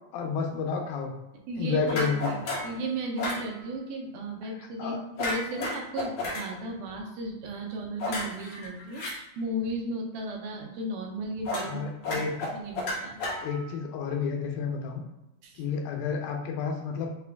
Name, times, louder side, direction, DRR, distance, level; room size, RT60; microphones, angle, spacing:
voice 1, 0.1-1.1 1.6-2.3 4.6-5.0 11.6-12.5 13.4-15.0 15.6-17.1, left 5 dB, 85° left, 2 dB, 2.5 m, -30 dB
voice 2, 1.5-2.1 2.6-12.2 12.5-13.2 15.4-15.6, right 1 dB, 75° right, 1 dB, 2.0 m, -35 dB
sound 1, 1.9-2.8 3.2-3.4 5.2-6.4 8.0-9.1 11.5-11.7 12.0-13.8, left 2 dB, 70° left, 1.5 m, -32 dB
5.7 x 2.2 x 3.4 m, 0.93 s
omnidirectional pair, 4.0 m